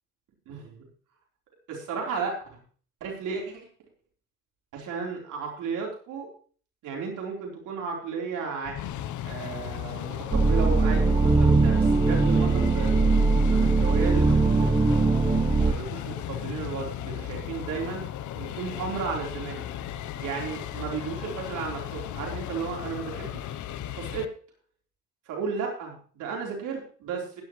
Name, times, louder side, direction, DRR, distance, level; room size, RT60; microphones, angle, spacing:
voice 1, 0.5-0.8 1.7-2.4 3.0-3.7 4.7-6.3 6.8-8.8 9.2-14.8 15.7-18.0 18.3-19.6 20.2-23.5 23.9-24.3 25.3-27.4, right 5 dB, 85° right, -1 dB, 4.0 m, -34 dB
sound 1, 8.6-24.3, left 11 dB, 75° left, 0.9 m, -36 dB
sound 2, 10.3-15.7, right 3 dB, 15° right, 1.0 m, -21 dB
15.5 x 10.5 x 3.2 m, 0.43 s
cardioid pair, 90°, 30 cm